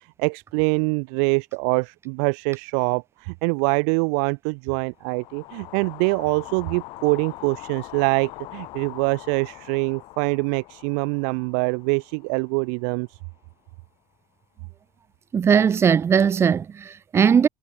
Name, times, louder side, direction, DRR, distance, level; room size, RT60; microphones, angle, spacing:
voice 1, 0.0-13.2, right 40 dB or more, 75° right, 1.6 m, -24 dB
sound 1, 5.0-13.2, left 20 dB, 65° left, 5.2 m, -42 dB
voice 2, 15.3-17.5, right 7 dB, 25° right, 1.3 m, -19 dB
supercardioid pair, 125°, 10 cm